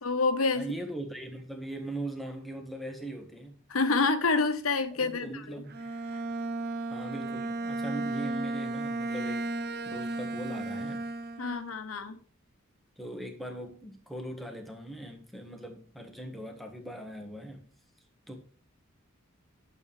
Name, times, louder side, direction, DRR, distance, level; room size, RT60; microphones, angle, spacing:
voice 1, 0.0-0.7 3.7-5.6 11.4-12.2, left 3 dB, 85° left, 1.2 m, -28 dB
voice 2, 0.5-3.5 5.0-5.8 6.9-9.4 9.8-11.0 13.0-17.7 18.3-18.4, right 1 dB, ahead, 1.4 m, -40 dB
Bowed string instrument, 5.7-11.7, right 2 dB, 50° right, 0.6 m, -34 dB
11.5 x 7.0 x 3.4 m
head